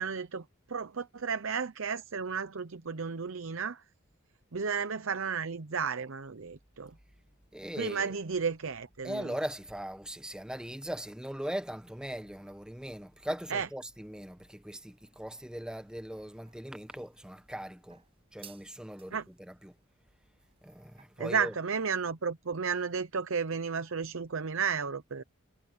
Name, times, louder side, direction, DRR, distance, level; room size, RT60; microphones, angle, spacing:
voice 1, 0.0-3.8 4.5-6.9 7.8-9.3 13.5-13.7 19.1-19.2 21.2-25.2, right 6 dB, 70° right, 0.8 m, -33 dB
voice 2, 7.5-8.2 9.0-18.0 18.3-19.8 20.6-21.6, equal, 5° right, 0.9 m, -40 dB
sound 1, 14.7-21.0, right 8 dB, 25° right, 6.9 m, -61 dB
head